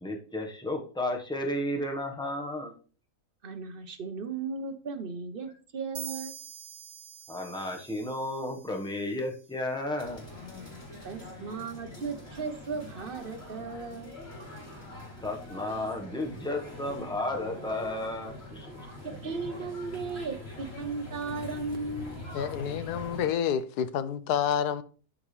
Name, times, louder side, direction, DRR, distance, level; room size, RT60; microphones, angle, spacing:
voice 1, 0.0-2.7 7.3-10.2 15.2-18.7, left 1 dB, 5° left, 1.1 m, -33 dB
voice 2, 3.4-6.3 11.0-14.2 19.2-22.2, right 4 dB, 40° right, 1.0 m, -36 dB
sound 1, 5.9-9.5, right 11 dB, 75° right, 0.6 m, -46 dB
sound 2, 10.0-23.3, left 1 dB, 40° left, 3.2 m, -43 dB
voice 3, 22.3-24.8, left 8 dB, 75° left, 1.2 m, -29 dB
12.0 x 5.1 x 3.3 m
omnidirectional pair, 1.7 m